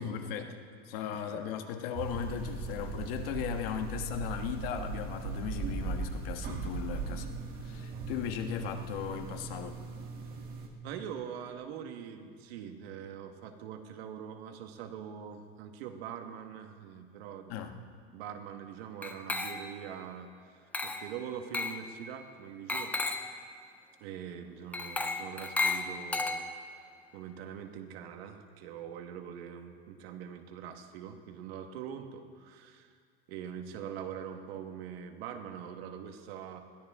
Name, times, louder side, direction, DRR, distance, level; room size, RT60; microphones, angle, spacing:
voice 1, 0.0-7.3 7.6-9.8 17.5-17.7, left 8 dB, 75° left, 5 dB, 1.5 m, -37 dB
voice 2, 1.1-1.4 10.8-17.6 18.1-20.5 20.8-22.9 24.0-26.4 27.1-32.9 33.3-36.6, right 8 dB, 80° right, 5 dB, 1.6 m, -43 dB
sound 1, 1.9-10.7, right 4 dB, 30° right, 1.7 m, -39 dB
Glass, 19.0-19.9 20.7-21.1 21.5-21.8 22.7-23.3 24.7-26.8, left 3 dB, 5° left, 0.5 m, -33 dB
21.5 x 15.5 x 3.7 m, 2.1 s
cardioid pair, 175°, 30 cm